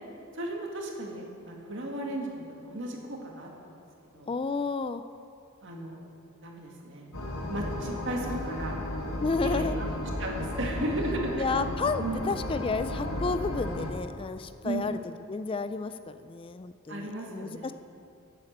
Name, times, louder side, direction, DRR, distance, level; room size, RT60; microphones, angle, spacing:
voice 1, 0.3-3.8 4.1-4.3 5.6-6.1 6.4-7.1 7.5-8.8 9.2-9.9 10.2-11.5 12.0-12.4 14.6-14.9 16.9-17.7, right 1 dB, 60° right, 0 dB, 2.0 m, -35 dB
voice 2, 4.3-5.0 9.2-9.7 11.3-15.0 15.3-17.7, left 4 dB, 25° left, 11 dB, 0.3 m, -31 dB
sound 1, 7.1-13.9, left 1 dB, 80° left, 1.7 m, -34 dB
12.0 x 8.4 x 7.4 m, 2.5 s
head